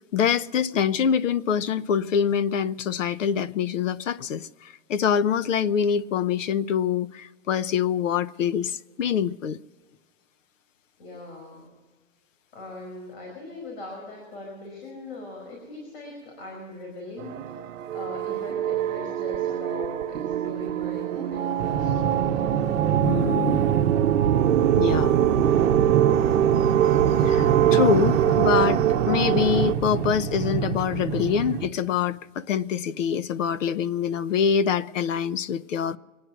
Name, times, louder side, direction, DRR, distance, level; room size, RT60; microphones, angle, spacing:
voice 1, 0.1-9.6 23.0-23.6 24.8-25.1 27.2-28.8 29.1-36.0, left 7 dB, 75° left, 0.8 m, -25 dB
voice 2, 11.0-11.7 12.5-17.5 17.9-21.9, left 2 dB, 50° left, 5.2 m, -40 dB
sound 1, 17.2-29.7, right 10 dB, 85° right, 0.8 m, -23 dB
sound 2, 21.6-31.7, right 8 dB, 20° right, 0.9 m, -27 dB
24.5 x 9.6 x 6.1 m
hypercardioid pair, 160°, 38 cm